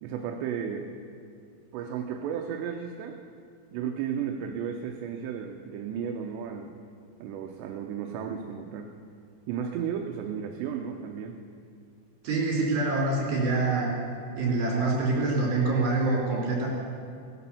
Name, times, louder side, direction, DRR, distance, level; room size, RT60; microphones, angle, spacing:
voice 1, 0.0-0.9 1.7-3.2 3.7-6.7 7.2-8.9 9.5-11.4, right 8 dB, 80° right, 3 dB, 2.9 m, -34 dB
voice 2, 12.2-13.9 14.4-16.7, right 3 dB, 50° right, -3 dB, 5.0 m, -25 dB
18.5 x 10.5 x 7.0 m, 2.4 s
omnidirectional pair, 5.3 m